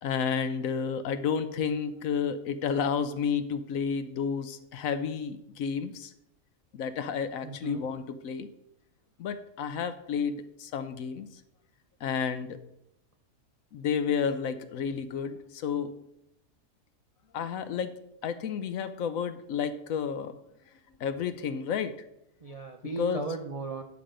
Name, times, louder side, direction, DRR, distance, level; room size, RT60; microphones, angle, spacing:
voice 1, 0.0-6.1 6.7-8.5 9.2-11.3 12.0-12.6 13.7-15.9 17.3-17.9 18.2-20.4 21.0-22.0 23.0-23.2, left 6 dB, 70° left, 11 dB, 1.0 m, -31 dB
voice 2, 7.4-7.8 22.4-23.8, right 3 dB, 45° right, 3 dB, 0.4 m, -36 dB
9.5 x 6.0 x 5.0 m, 0.82 s
omnidirectional pair, 1.6 m